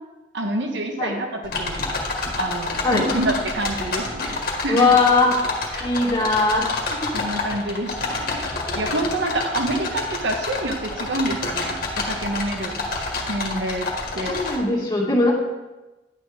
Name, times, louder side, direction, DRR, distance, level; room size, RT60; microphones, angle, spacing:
voice 1, 0.3-1.8 2.4-4.4 4.6-4.9 5.7-5.9 6.9-13.9 14.1-14.4, right 1 dB, 85° right, 3 dB, 1.4 m, -27 dB
sound 1, 1.4-14.6, left 3 dB, 55° left, 1.8 m, -28 dB
voice 2, 4.7-5.3 5.8-6.7 14.3-15.3, left 3 dB, 25° left, -4 dB, 2.3 m, -19 dB
10.5 x 8.9 x 3.6 m, 1.1 s
head